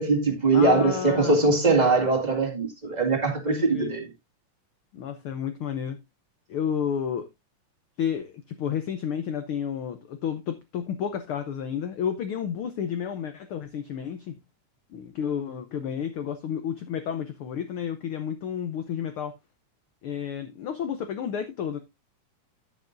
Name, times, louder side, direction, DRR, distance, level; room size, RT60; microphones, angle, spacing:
voice 1, 0.0-4.1, right 3 dB, 15° right, 1.7 m, -22 dB
voice 2, 0.5-1.4 3.5-3.9 4.9-6.0 6.5-7.3 8.0-14.4 14.9-19.3 20.0-21.8, left 8 dB, 90° left, 1.1 m, -31 dB
10.0 x 8.9 x 2.5 m
omnidirectional pair, 3.5 m